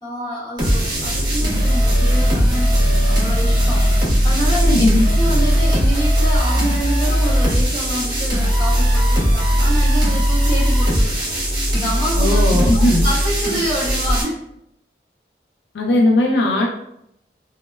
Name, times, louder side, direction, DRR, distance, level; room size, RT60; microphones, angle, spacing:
voice 1, 0.0-11.2 11.5-14.4, equal, 25° left, -9 dB, 1.1 m, -27 dB
sound 1, 0.6-14.2, equal, 25° right, 0.5 m, -17 dB
sound 2, 0.6-5.7, right 1 dB, 85° right, 0.3 m, -30 dB
voice 2, 4.7-5.1 12.2-13.0 15.7-16.7, left 1 dB, 75° left, 0 dB, 0.3 m, -17 dB
2.9 x 2.0 x 2.2 m, 0.77 s
head